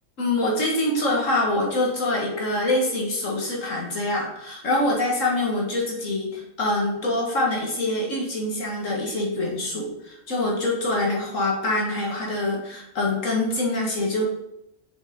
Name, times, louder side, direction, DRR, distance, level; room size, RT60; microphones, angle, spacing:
voice 1, 0.2-14.2, left 2 dB, 70° left, -2 dB, 2.1 m, -25 dB
6.3 x 5.9 x 3.7 m, 0.84 s
omnidirectional pair, 1.4 m